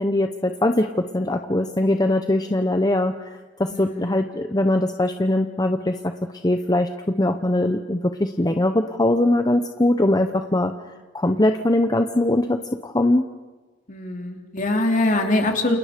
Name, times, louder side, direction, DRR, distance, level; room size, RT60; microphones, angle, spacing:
voice 1, 0.0-3.1 3.6-6.1 6.4-10.7 11.1-13.2, left 1 dB, 20° left, 6 dB, 0.9 m, -21 dB
voice 2, 3.7-4.2 13.9-15.8, left 2 dB, 45° left, 2 dB, 3.3 m, -23 dB
29.5 x 29.0 x 5.2 m, 1.3 s
head